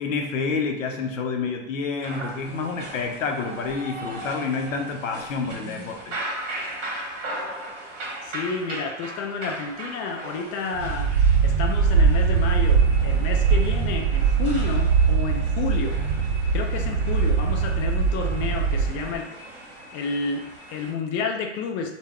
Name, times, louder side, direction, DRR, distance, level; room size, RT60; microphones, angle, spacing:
voice 1, 0.0-6.2, left 4 dB, 80° left, 3 dB, 0.6 m, -28 dB
sound 1, 2.0-20.9, right 1 dB, 40° right, 1.1 m, -38 dB
voice 2, 8.2-11.1 11.4-16.0 16.5-19.3 19.9-21.9, left 4 dB, 35° left, 3 dB, 0.4 m, -30 dB
sound 2, 10.7-19.2, right 5 dB, 60° right, 0.6 m, -21 dB
2.2 x 2.2 x 3.4 m, 0.87 s
hypercardioid pair, 100°, 39 cm